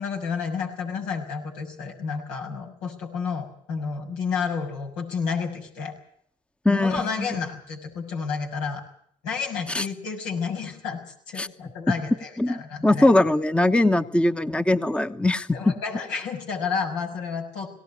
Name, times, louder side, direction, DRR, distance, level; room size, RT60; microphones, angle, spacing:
voice 1, 0.0-5.9 6.7-8.8 9.2-11.0 11.3-13.1 15.5-17.7, left 5 dB, 85° left, 1 dB, 6.3 m, -30 dB
voice 2, 6.6-7.3 9.7-9.9 11.4-11.5 12.4-15.7, left 2 dB, 5° left, 11 dB, 1.0 m, -21 dB
18.5 x 18.0 x 9.7 m, 0.64 s
supercardioid pair, 70°, 16 cm